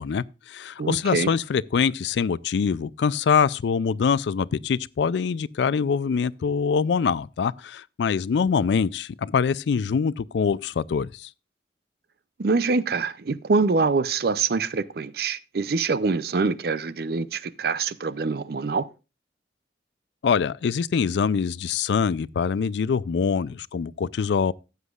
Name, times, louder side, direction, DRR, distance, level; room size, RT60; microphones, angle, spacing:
voice 1, 0.0-11.3 20.2-24.5, left 6 dB, 75° left, 0.4 m, -24 dB
voice 2, 0.8-1.3 12.4-18.9, right 4 dB, 60° right, 0.5 m, -25 dB
14.5 x 8.1 x 2.4 m
head